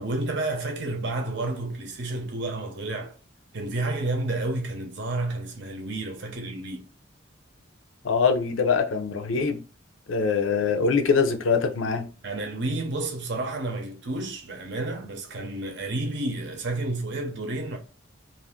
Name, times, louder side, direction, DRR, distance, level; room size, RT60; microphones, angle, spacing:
voice 1, 0.0-3.1 3.5-6.8 12.2-17.8, right 2 dB, 60° right, 0.7 m, -30 dB
voice 2, 8.0-9.6 10.1-12.1, left 5 dB, 85° left, 0.6 m, -23 dB
2.6 x 2.5 x 3.5 m
head